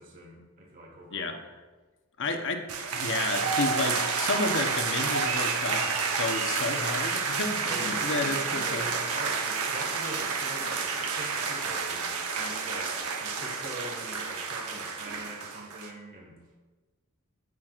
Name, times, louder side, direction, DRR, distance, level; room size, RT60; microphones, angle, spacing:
voice 1, 0.0-1.5 7.7-16.6, right 1 dB, 40° right, -2 dB, 1.7 m, -42 dB
voice 2, 2.2-8.9, left 3 dB, 55° left, 5 dB, 0.9 m, -31 dB
sound 1, 2.7-15.9, right 5 dB, 75° right, 1.0 m, -30 dB
14.5 x 6.1 x 2.5 m, 1.3 s
head